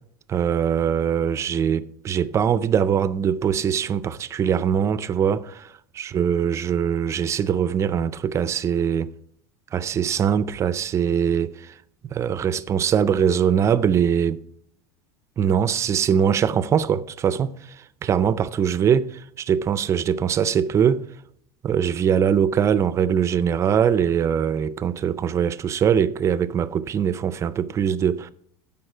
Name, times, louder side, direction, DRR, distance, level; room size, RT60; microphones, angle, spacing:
voice 1, 0.3-9.1 9.7-11.7 12.1-14.4 15.4-17.5 18.0-21.1 21.6-28.3, right 8 dB, 25° right, 0.4 m, -22 dB
14.5 x 5.4 x 4.4 m
supercardioid pair, 140°, 11 cm